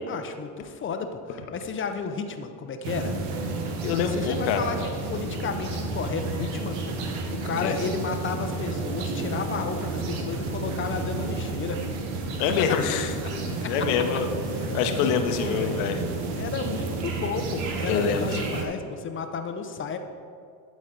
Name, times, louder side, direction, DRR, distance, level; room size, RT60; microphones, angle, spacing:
voice 1, 0.1-3.2 4.1-7.1 7.4-11.8 13.6-13.7 15.0-15.8 16.3-20.0, left 5 dB, 30° left, 7 dB, 0.6 m, -32 dB
sound 1, 2.8-18.6, right 3 dB, 70° right, 1.1 m, -31 dB
voice 2, 3.8-4.7 7.4-7.8 12.4-13.1 13.6-14.3 14.7-16.0 17.9-18.4, left 7 dB, 70° left, 6 dB, 0.9 m, -25 dB
11.5 x 4.2 x 3.9 m, 2.4 s
supercardioid pair, 95°, 43 cm